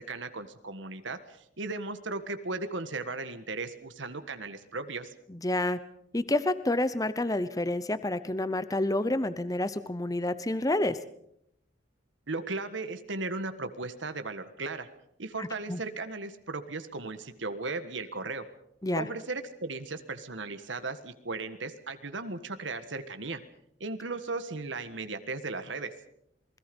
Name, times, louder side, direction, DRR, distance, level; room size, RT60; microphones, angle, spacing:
voice 1, 0.0-5.1 12.3-14.9 15.2-18.4 18.9-23.4 23.8-25.9, right 3 dB, 75° right, 9 dB, 1.6 m, -36 dB
voice 2, 5.3-5.8 6.1-11.0 15.4-15.8 18.8-19.1, left 1 dB, 20° left, 13 dB, 0.8 m, -29 dB
28.0 x 20.5 x 5.4 m, 0.75 s
head